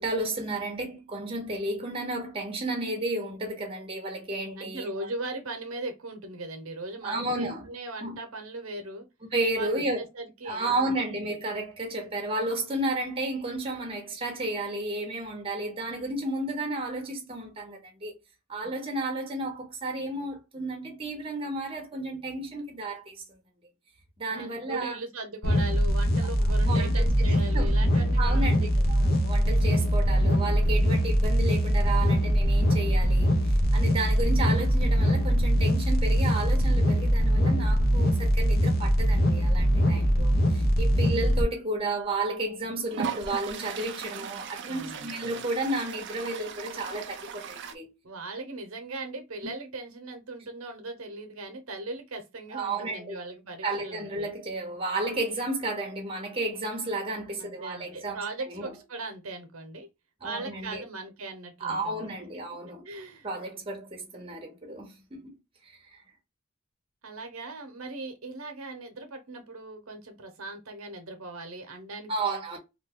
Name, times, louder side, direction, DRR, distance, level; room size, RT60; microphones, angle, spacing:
voice 1, 0.0-5.1 7.0-7.6 8.0-8.2 9.3-10.0 10.5-18.2 18.5-23.2 24.2-25.0 26.2-26.3 26.6-33.4 33.7-47.9 52.5-53.1 53.6-58.2 58.5-58.7 60.2-60.8 61.6-62.8 63.2-65.3 65.6-66.0 72.1-72.6, right 2 dB, 25° right, 0.8 m, -32 dB
voice 2, 4.5-9.1 9.5-11.0 24.3-28.7 44.7-45.4 48.0-54.3 57.4-59.9 60.2-62.1 62.8-63.3 67.0-72.4, right 2 dB, 80° right, 0.8 m, -39 dB
sound 1, 25.4-41.4, equal, 45° left, 0.6 m, -22 dB
Toilet flush, 41.9-42.0 42.9-47.8, right 6 dB, 55° right, 0.4 m, -38 dB
2.6 x 2.3 x 3.5 m
head